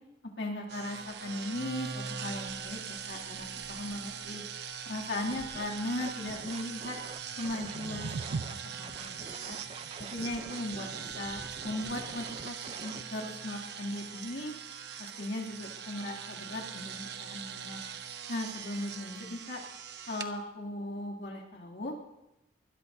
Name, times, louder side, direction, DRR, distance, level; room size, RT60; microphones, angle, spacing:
voice 1, 0.4-4.4 4.9-7.0 7.3-9.6 10.0-10.9 11.1-14.5 15.0-17.8 18.3-19.6 20.1-21.9, left 1 dB, 70° left, -1 dB, 2.7 m, -38 dB
sound 1, 0.7-20.3, right 7 dB, 60° right, 1.0 m, -42 dB
Scratching (performance technique), 5.3-5.6 6.0-8.5 8.8-13.0, right 3 dB, 30° right, 0.6 m, -47 dB
sound 2, 7.2-13.3, right 4 dB, 85° right, 0.5 m, -44 dB
23.5 x 21.0 x 2.7 m, 0.96 s
head